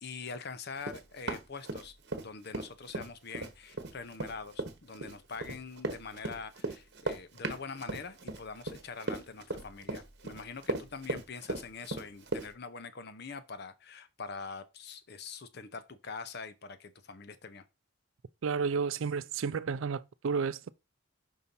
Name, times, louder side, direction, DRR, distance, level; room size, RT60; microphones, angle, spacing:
voice 1, 0.0-17.6, left 5 dB, 50° left, 0.7 m, -44 dB
Run, 0.8-2.3 2.5-12.5, right 2 dB, 50° right, 1.0 m, -36 dB
voice 2, 18.4-20.7, right 5 dB, 70° right, 0.4 m, -32 dB
5.5 x 4.1 x 5.3 m
head